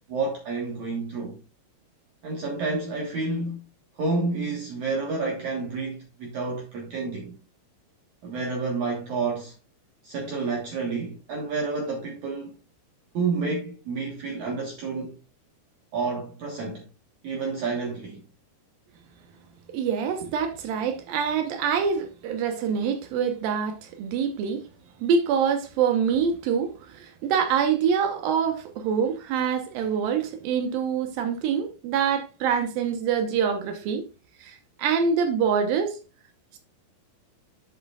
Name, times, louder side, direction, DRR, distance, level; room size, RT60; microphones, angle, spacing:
voice 1, 0.1-1.3 2.2-3.6 4.0-7.3 8.2-9.5 10.0-12.5 13.1-15.2 15.9-16.8 17.2-18.2, right 3 dB, 70° right, 1.8 m, -29 dB
voice 2, 19.7-24.6 25.0-26.7 27.0-34.1 34.5-35.9, right 7 dB, 85° right, 2.0 m, -25 dB
11.0 x 7.6 x 2.4 m
omnidirectional pair, 5.7 m